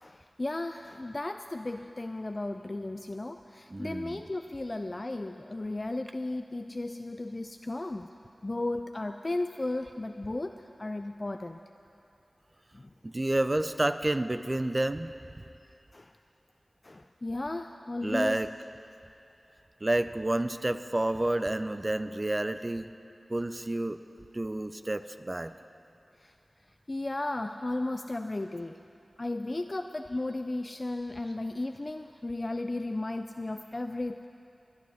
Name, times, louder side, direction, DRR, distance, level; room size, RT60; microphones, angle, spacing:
voice 1, 0.0-8.1 8.4-11.6 12.7-12.9 15.9-16.1 16.8-18.4 26.2-26.3 26.9-28.8 29.2-34.3, left 2 dB, 40° left, 7 dB, 0.3 m, -35 dB
voice 2, 3.7-4.2 13.0-15.1 18.0-18.5 19.8-22.9 23.3-24.0 24.3-25.5, right 1 dB, 35° right, 11 dB, 0.5 m, -29 dB
22.5 x 10.0 x 3.5 m, 2.6 s
cardioid pair, 40°, 0 cm